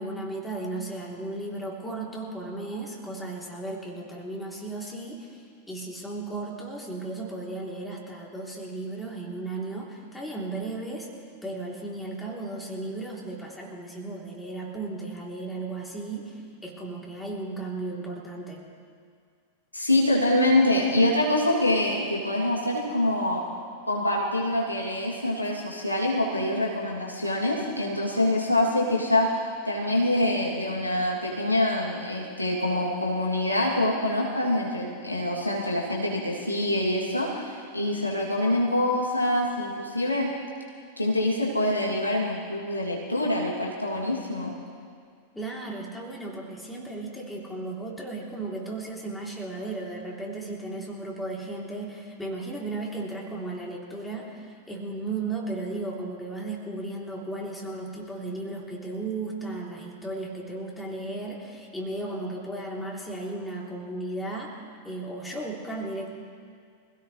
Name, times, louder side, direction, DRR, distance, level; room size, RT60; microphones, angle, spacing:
voice 1, 0.0-11.1 11.4-18.6 45.4-64.6 64.8-66.1, right 2 dB, 5° left, -3 dB, 3.5 m, -35 dB
voice 2, 19.7-23.4 23.8-40.3 41.0-44.5, left 1 dB, 85° left, -4 dB, 2.9 m, -25 dB
25.5 x 17.0 x 3.3 m, 2.1 s
figure-of-eight pair, 90°, 0 cm